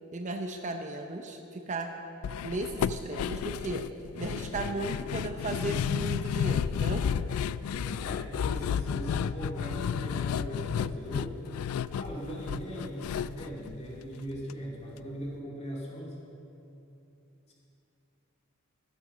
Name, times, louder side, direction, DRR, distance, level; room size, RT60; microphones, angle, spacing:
voice 1, 0.1-1.9 2.4-3.8 4.2-7.0, right 2 dB, 35° right, 5 dB, 0.7 m, -35 dB
sound 1, 2.2-14.5 14.8-14.9 15.2-15.4, left 8 dB, 80° left, 0.3 m, -32 dB
voice 2, 7.7-11.4 11.9-16.2 17.5-17.6, right 1 dB, 30° left, -3 dB, 2.6 m, -39 dB
13.5 x 8.1 x 6.7 m, 2.8 s
head